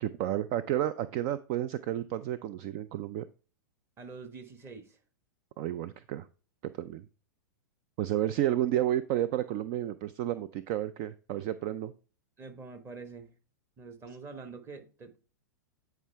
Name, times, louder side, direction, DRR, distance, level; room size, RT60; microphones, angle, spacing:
voice 1, 0.0-3.3 5.6-6.3 6.6-7.0 8.0-11.9, right 12 dB, 45° right, 0.4 m, -31 dB
voice 2, 4.0-5.0 12.4-13.3 13.8-15.2, right 4 dB, 25° right, 1.3 m, -45 dB
9.3 x 4.6 x 3.4 m
hypercardioid pair, 115°, 11 cm